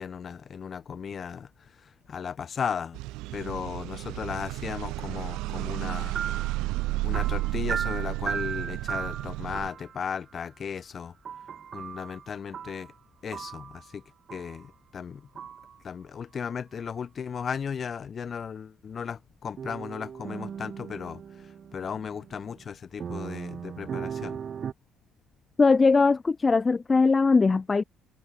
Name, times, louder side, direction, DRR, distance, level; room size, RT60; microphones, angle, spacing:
voice 1, 0.0-3.0 3.3-6.2 7.0-11.1 11.7-12.9 13.2-14.0 14.3-15.3 15.8-24.4, left 7 dB, 45° left, 4.2 m, -36 dB
sound 1, 2.9-9.7, right 21 dB, 70° right, 1.7 m, -32 dB
sound 2, 5.3-10.0 11.2-12.9 13.3-13.9 14.3-14.7 15.3-15.8 19.6-22.7 23.0-24.7, right 7 dB, 50° right, 4.4 m, -37 dB
voice 2, 25.6-27.8, left 4 dB, 30° left, 1.0 m, -20 dB
hypercardioid pair, 50°, 0 cm